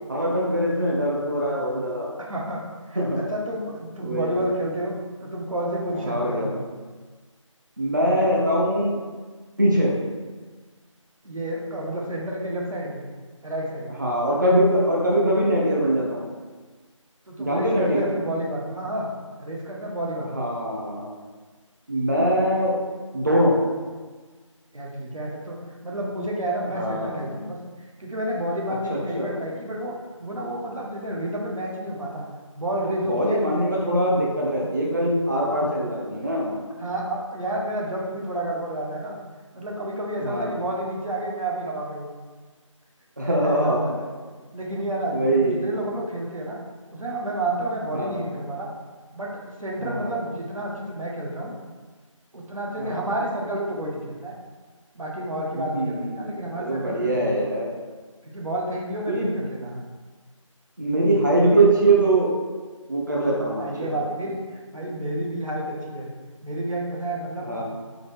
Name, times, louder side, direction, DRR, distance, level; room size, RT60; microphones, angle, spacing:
voice 1, 0.1-2.1 3.0-3.2 4.0-4.3 5.9-6.5 7.8-9.0 9.6-9.9 14.0-16.2 17.4-18.0 20.3-21.1 21.9-22.8 23.1-23.6 26.7-27.2 28.9-29.3 33.0-36.6 40.2-40.5 43.2-43.9 45.1-45.6 47.9-48.2 49.8-50.2 52.8-53.0 55.5-57.7 59.1-59.3 60.8-62.3 62.9-64.0 67.4-67.6, right 1 dB, 35° right, -3 dB, 0.6 m, -22 dB
voice 2, 2.3-4.9 5.2-6.6 11.2-13.0 13.4-14.0 17.3-19.1 19.4-20.5 24.7-25.6 25.8-32.2 32.5-33.4 33.8-33.9 36.8-39.2 39.5-42.1 43.2-44.1 44.5-46.6 46.9-48.7 49.1-51.6 52.3-54.4 54.9-57.3 58.2-59.8 63.6-64.4 64.7-66.1 66.4-67.6, right 1 dB, 80° right, -3 dB, 1.1 m, -30 dB
3.9 x 3.1 x 3.4 m, 1.4 s
figure-of-eight pair, 175°, 17 cm